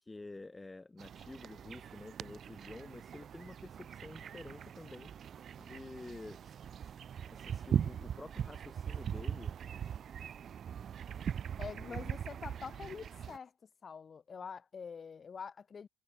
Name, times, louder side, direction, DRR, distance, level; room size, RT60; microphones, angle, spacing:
voice 1, 0.0-5.1 5.6-6.6 6.8-6.9 7.3-9.5 11.1-11.2 11.7-12.0, left 2 dB, 15° left, 1.6 m, -49 dB
sound 1, 1.0-13.4, right 8 dB, 45° right, 0.4 m, -40 dB
voice 2, 11.6-13.5 13.8-15.9, left 6 dB, 35° left, 3.7 m, -45 dB
cardioid pair, 100°, 0 cm